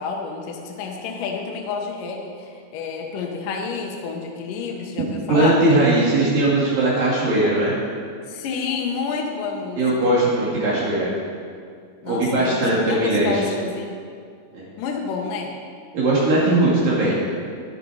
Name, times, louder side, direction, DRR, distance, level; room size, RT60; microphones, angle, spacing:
voice 1, 0.0-5.6 8.3-10.1 12.0-13.9 14.8-15.5, left 5 dB, 70° left, 1 dB, 2.5 m, -29 dB
voice 2, 5.3-7.7 9.8-11.1 12.1-13.4 14.5-14.7 15.9-17.2, right 2 dB, 65° right, -7 dB, 3.9 m, -19 dB
12.0 x 11.5 x 4.8 m, 2.2 s
omnidirectional pair, 4.4 m